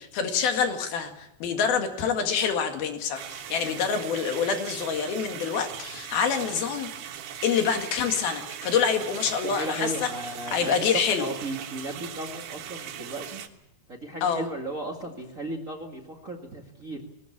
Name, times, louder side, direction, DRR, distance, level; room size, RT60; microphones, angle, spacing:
voice 1, 0.1-6.9 7.4-10.1 10.5-11.3 14.2-14.4, left 6 dB, 80° left, 5 dB, 3.9 m, -26 dB
sound 1, 3.1-13.5, right 9 dB, 90° right, 3.4 m, -39 dB
voice 2, 9.4-13.4 13.9-17.0, right 1 dB, 30° right, 2 dB, 1.8 m, -35 dB
20.5 x 19.5 x 8.6 m, 0.85 s
omnidirectional pair, 4.3 m